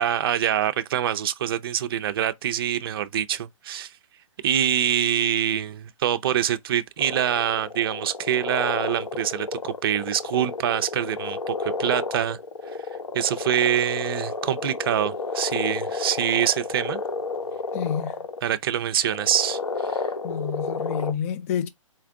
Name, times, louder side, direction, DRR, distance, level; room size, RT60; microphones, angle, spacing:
voice 1, 0.0-3.9 4.4-12.4 13.1-17.0 18.4-19.6 19.9-20.0, right 10 dB, 45° right, 0.5 m, -25 dB
sound 1, 7.0-18.4 19.0-21.1, left 4 dB, 90° left, 1.0 m, -31 dB
voice 2, 17.7-18.1 20.2-21.7, left 8 dB, 25° left, 0.4 m, -28 dB
4.3 x 2.4 x 4.6 m
hypercardioid pair, 150°, 17 cm